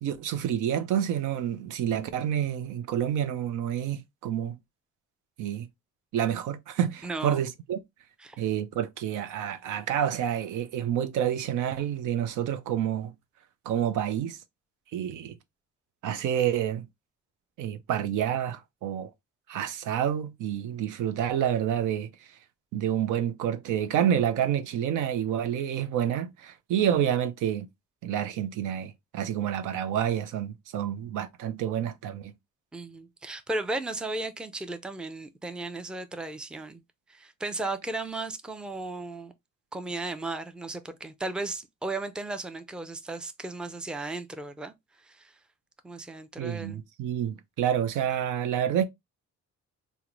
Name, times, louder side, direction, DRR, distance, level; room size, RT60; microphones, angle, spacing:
voice 1, 0.0-4.6 5.4-5.7 6.1-7.8 8.4-13.1 13.7-14.4 14.9-15.3 16.0-16.8 17.6-19.1 19.5-22.1 22.7-27.7 28.0-32.3 46.4-48.9, right 10 dB, 85° right, 0.6 m, -28 dB
voice 2, 7.0-7.4 8.2-8.4 32.7-36.8 37.1-39.3 39.7-45.4 45.8-46.8, right 2 dB, 5° right, 0.4 m, -35 dB
3.6 x 2.1 x 3.0 m
cardioid pair, 90°, 30 cm